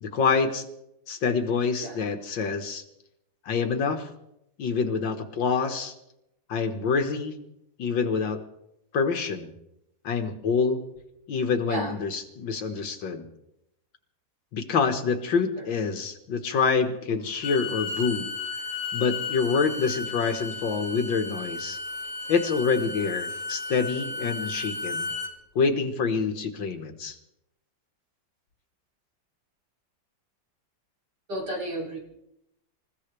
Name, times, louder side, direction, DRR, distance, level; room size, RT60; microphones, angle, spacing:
voice 1, 0.0-0.6 1.1-2.8 3.5-4.1 4.6-5.9 6.5-7.3 7.8-8.4 8.9-9.5 10.0-10.8 11.3-13.3 14.5-18.3 18.9-21.8 22.3-25.1 25.6-27.2, left 5 dB, 85° left, 6 dB, 2.2 m, -26 dB
Bowed string instrument, 17.3-25.3, left 4 dB, 50° left, 3.8 m, -34 dB
voice 2, 31.3-32.0, right 1 dB, 65° right, -1 dB, 3.8 m, -31 dB
27.5 x 15.5 x 3.4 m, 0.83 s
omnidirectional pair, 2.0 m